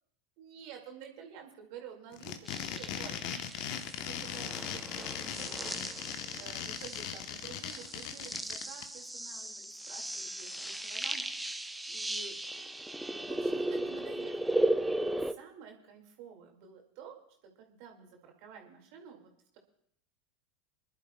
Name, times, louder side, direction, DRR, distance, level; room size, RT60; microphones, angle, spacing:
voice 1, 0.4-5.9 6.3-12.4 13.2-17.2 17.4-19.6, right 7 dB, 55° right, 2 dB, 2.1 m, -51 dB
sound 1, 2.1-8.8, left 9 dB, 55° left, 0.9 m, -39 dB
sound 2, 2.5-15.3, right 1 dB, 5° right, 0.7 m, -36 dB
27.0 x 11.0 x 2.3 m, 0.68 s
figure-of-eight pair, 85°, 0 cm